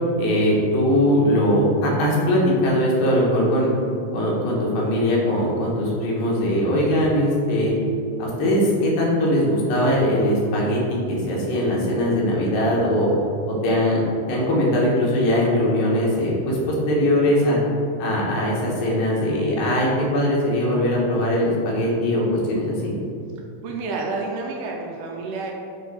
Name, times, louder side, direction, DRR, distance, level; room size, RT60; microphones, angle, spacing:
voice 1, 0.2-3.7 4.1-7.7 8.2-13.1 13.6-14.0 14.3-17.6 18.0-22.9, equal, 80° left, -4 dB, 2.9 m, -21 dB
voice 2, 23.6-25.5, right 3 dB, 80° right, 0 dB, 2.1 m, -29 dB
8.6 x 3.1 x 4.1 m, 2.5 s
omnidirectional pair, 4.0 m